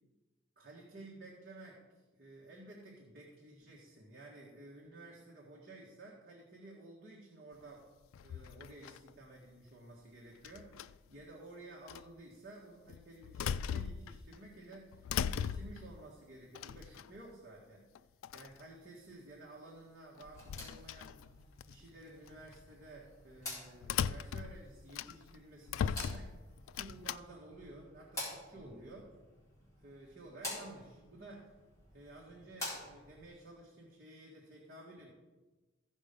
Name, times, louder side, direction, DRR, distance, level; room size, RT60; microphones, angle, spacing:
voice 1, 0.6-1.8 2.1-7.9 8.2-17.8 18.3-21.3 21.6-26.3 26.7-29.1 29.8-31.5 31.9-35.1, right 2 dB, 50° right, -4 dB, 1.7 m, -53 dB
sound 1, 8.1-9.1 10.4-11.1 11.9-12.0 12.9-14.4 14.7-15.9 16.5-17.3 17.9-18.0 18.2-18.6 20.2-21.7 22.3-22.5 23.8-25.4 25.7-27.2, left 8 dB, 90° left, 0.3 m, -39 dB
sound 2, 20.2-33.3, left 1 dB, 15° left, 4.2 m, -49 dB
14.5 x 5.6 x 5.3 m, 1.2 s
head